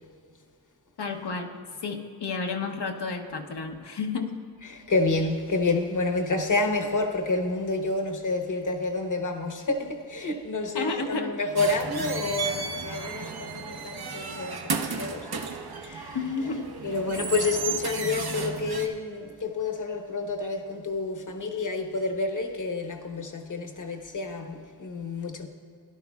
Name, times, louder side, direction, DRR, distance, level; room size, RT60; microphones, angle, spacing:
voice 1, 1.0-1.5 1.8-4.4 10.7-11.3 16.1-16.7, left 4 dB, 70° left, 1.0 m, -31 dB
voice 2, 4.6-15.5 15.8-16.2 16.8-25.5, left 3 dB, 45° left, 1.1 m, -29 dB
sound 1, 11.6-18.9, right 5 dB, 60° right, 0.9 m, -34 dB
17.0 x 11.5 x 2.4 m
wide cardioid pair, 115°, 41 cm